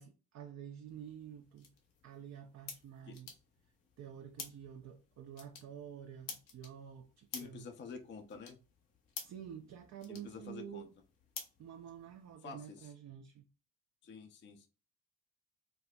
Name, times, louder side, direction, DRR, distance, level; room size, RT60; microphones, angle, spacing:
voice 1, 0.0-1.7 2.0-3.3 4.0-7.7 9.2-10.9 11.6-13.4, right 9 dB, 40° right, 0.4 m, -49 dB
sound 1, 0.9-12.4, left 6 dB, 80° left, 0.8 m, -52 dB
voice 2, 7.3-8.6 10.1-10.9 12.4-12.9 14.0-14.7, left 5 dB, 25° left, 0.5 m, -49 dB
4.1 x 2.0 x 2.2 m
hypercardioid pair, 45°, 43 cm